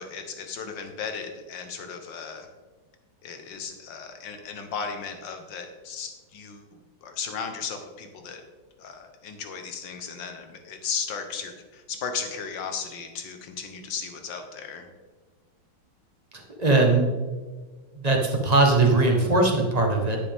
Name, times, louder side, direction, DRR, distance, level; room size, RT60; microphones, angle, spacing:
voice 1, 0.0-2.5 3.2-8.4 8.8-14.9, left 6 dB, 60° left, 6 dB, 1.7 m, -35 dB
voice 2, 16.6-17.1 17.9-20.2, right 2 dB, 25° right, 1 dB, 1.1 m, -20 dB
9.8 x 9.5 x 3.6 m, 1.4 s
omnidirectional pair, 2.4 m